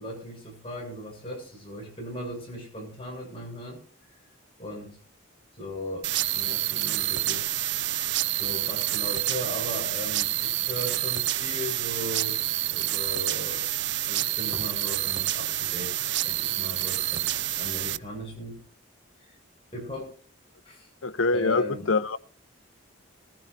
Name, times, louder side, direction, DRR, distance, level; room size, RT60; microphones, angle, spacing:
voice 1, 0.0-3.8 4.6-5.0 5.5-7.5 8.4-12.4 12.7-13.7 14.1-15.9 16.2-18.6 19.2-19.4 19.7-20.2 20.6-20.9 21.3-21.9, left 1 dB, 25° left, 0 dB, 7.6 m, -37 dB
sound 1, 6.0-18.0, right 13 dB, 55° right, 0.5 m, -28 dB
voice 2, 21.0-22.2, left 3 dB, 80° left, 11 dB, 0.9 m, -25 dB
20.0 x 15.5 x 2.6 m, 0.40 s
head